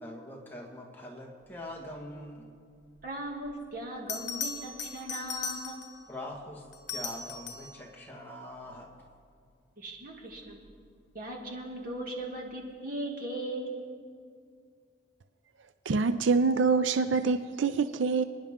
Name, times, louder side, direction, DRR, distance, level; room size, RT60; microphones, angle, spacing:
voice 1, 0.0-2.5 6.1-6.6 6.9-8.9, left 1 dB, 10° left, -1 dB, 1.6 m, -43 dB
voice 2, 3.0-5.8 9.8-10.6 11.1-13.7, right 1 dB, 45° right, 0 dB, 2.1 m, -38 dB
Bell, 3.5-3.6 4.1-6.0 6.7-7.8 10.5-10.7, left 5 dB, 70° left, 1.3 m, -38 dB
voice 3, 15.9-18.2, right 4 dB, 80° right, 11 dB, 0.5 m, -25 dB
29.0 x 10.0 x 3.6 m, 2.2 s
head